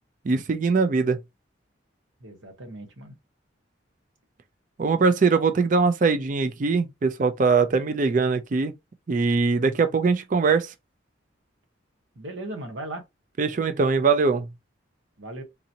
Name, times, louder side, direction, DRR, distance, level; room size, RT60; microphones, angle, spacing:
voice 1, 0.2-1.2 4.8-8.7 9.1-10.7 13.4-14.5, right 4 dB, 40° right, 0.4 m, -22 dB
voice 2, 2.2-3.1 12.2-13.0 15.2-15.4, right 1 dB, 80° right, 1.2 m, -37 dB
3.9 x 2.8 x 2.6 m
head